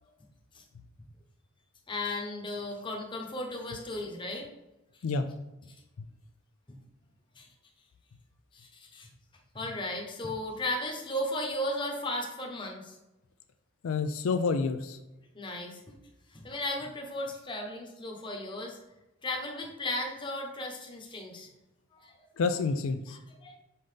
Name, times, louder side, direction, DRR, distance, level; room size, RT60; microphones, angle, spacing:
voice 1, 1.9-4.5 7.4-7.5 8.5-9.1 9.5-13.0 15.3-16.0 16.3-18.8 19.2-21.5 21.9-22.2 23.1-23.6, left 1 dB, 25° left, 1 dB, 1.0 m, -35 dB
voice 2, 13.8-15.0 22.4-23.2, left 4 dB, 75° left, 8 dB, 0.4 m, -28 dB
5.7 x 5.2 x 3.3 m, 0.97 s
head